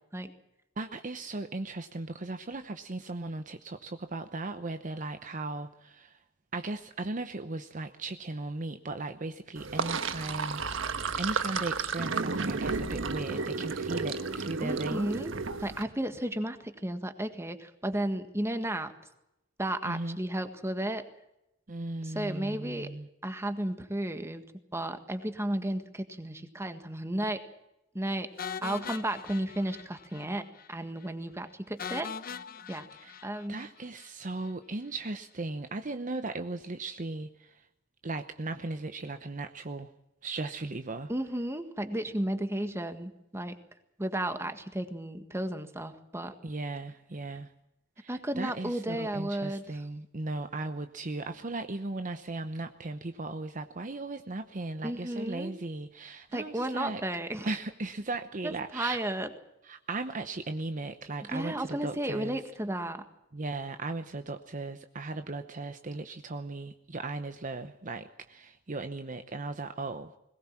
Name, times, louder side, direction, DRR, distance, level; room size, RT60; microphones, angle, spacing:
voice 1, 0.8-6.2 6.5-10.6 11.2-15.1 19.8-20.2 21.7-23.1 32.9-33.1 33.5-37.7 38.0-39.9 40.2-41.1 46.4-47.5 48.0-57.0 57.4-59.0 59.6-62.4 63.3-70.1, right 2 dB, 40° right, 8 dB, 0.9 m, -37 dB
Sink (filling or washing), 9.6-15.8, right 4 dB, 85° right, 1.3 m, -32 dB
voice 2, 14.6-15.3 15.6-18.9 19.6-21.0 22.0-22.9 23.2-24.4 24.7-27.4 27.9-28.3 28.6-32.1 32.7-32.8 33.2-33.6 41.1-43.6 44.0-46.4 48.1-49.6 54.8-55.5 56.3-57.5 58.4-59.3 61.3-63.0, right 1 dB, 15° right, 8 dB, 1.7 m, -33 dB
sound 1, 28.4-30.3 30.5-30.7 31.0-31.1 31.8-34.1, left 6 dB, 50° left, 0.9 m, -41 dB
21.5 x 19.0 x 7.4 m, 0.87 s
head